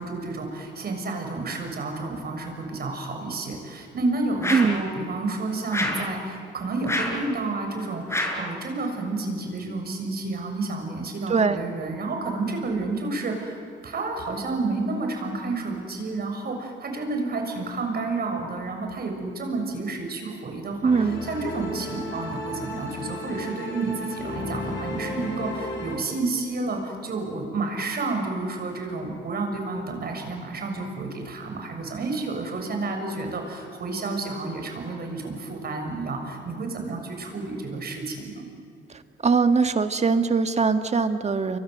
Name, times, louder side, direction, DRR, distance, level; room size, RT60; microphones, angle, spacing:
voice 1, 0.0-38.5, right 3 dB, 50° right, 4 dB, 6.9 m, -30 dB
sound 1, 4.4-4.8 5.7-6.1 6.9-7.2 8.1-8.5, left 1 dB, 15° left, 5.7 m, -27 dB
voice 2, 4.5-4.8 11.3-11.6 20.8-21.2 39.2-41.6, right 5 dB, 35° right, 8 dB, 1.7 m, -21 dB
sound 2, 20.8-26.0, left 1 dB, 70° left, 7.6 m, -33 dB
29.5 x 24.0 x 8.2 m, 2.4 s
cardioid pair, 90°, 20 cm